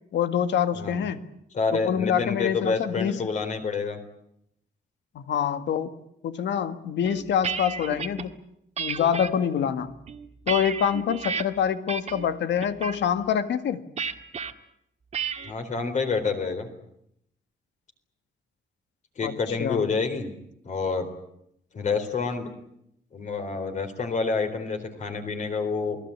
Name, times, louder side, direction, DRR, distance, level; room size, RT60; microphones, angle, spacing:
voice 1, 0.1-1.2 1.7-3.2 5.2-5.9 6.2-8.3 8.8-9.9 10.5-13.9 19.2-19.3 19.6-19.9, left 8 dB, 85° left, 10 dB, 1.8 m, -26 dB
voice 2, 1.5-4.0 15.4-16.7 19.2-20.3 20.6-21.1 21.7-22.5 23.1-26.0, left 4 dB, 40° left, 7 dB, 4.1 m, -28 dB
sound 1, 7.0-8.2 8.8-9.3 9.9-11.4 11.9-12.3 12.6-13.0 14.0-14.5 15.1-15.5, right 6 dB, 35° right, 1.7 m, -32 dB
28.5 x 19.5 x 8.7 m, 0.77 s
wide cardioid pair, 170°, 18 cm